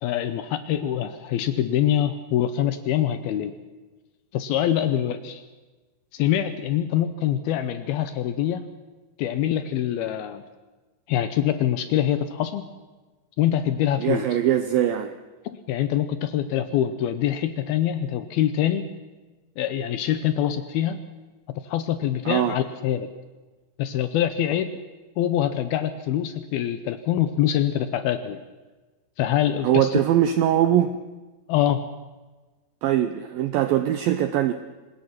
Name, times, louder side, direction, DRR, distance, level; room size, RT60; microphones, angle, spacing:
voice 1, 0.0-3.5 4.3-5.4 6.1-8.7 9.2-10.4 11.1-12.7 13.4-14.3 15.5-18.9 19.6-21.0 21.7-23.1 23.8-24.7 25.2-28.4 29.2-30.0 31.5-31.8, left 11 dB, 75° left, 11 dB, 2.4 m, -24 dB
voice 2, 14.0-15.1 22.3-22.6 29.6-31.0 32.8-34.5, right 11 dB, 85° right, 10 dB, 2.0 m, -21 dB
24.5 x 19.5 x 6.0 m, 1.2 s
omnidirectional pair, 5.1 m